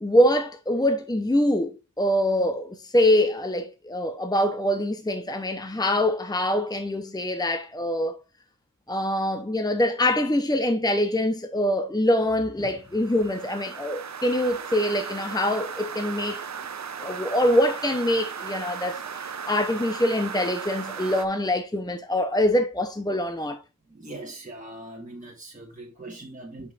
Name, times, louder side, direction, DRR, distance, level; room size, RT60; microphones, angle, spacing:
voice 1, 0.0-8.2 8.9-16.5 17.0-23.6, left 1 dB, 10° left, 0.8 m, -24 dB
sound 1, 12.9-21.3, right 6 dB, 55° right, 0.7 m, -36 dB
voice 2, 23.9-26.7, right 2 dB, 25° right, 1.6 m, -41 dB
9.2 x 5.4 x 2.5 m
wide cardioid pair, 80°, 32 cm